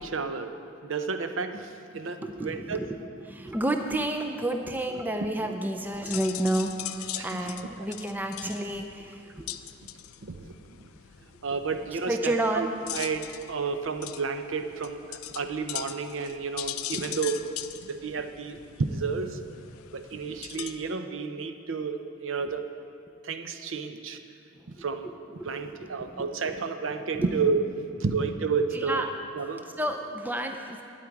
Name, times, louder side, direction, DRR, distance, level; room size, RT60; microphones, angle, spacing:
voice 1, 0.0-2.8 7.2-7.5 10.2-10.9 11.4-17.4 17.8-19.4 19.9-22.7 23.2-24.2 24.7-25.1 25.4-27.7 28.0-29.0 29.3-29.6, right 4 dB, 60° right, 8 dB, 0.6 m, -31 dB
voice 2, 2.2-9.6 12.1-12.7 16.9-17.2 24.6-24.7 25.0-25.5 25.8-26.3 27.1-27.3 28.7-29.1 29.8-30.8, right 1 dB, 10° right, 4 dB, 0.4 m, -31 dB
sound 1, 5.8-20.9, left 12 dB, 80° left, 0.4 m, -41 dB
12.5 x 8.9 x 4.7 m, 2.5 s
head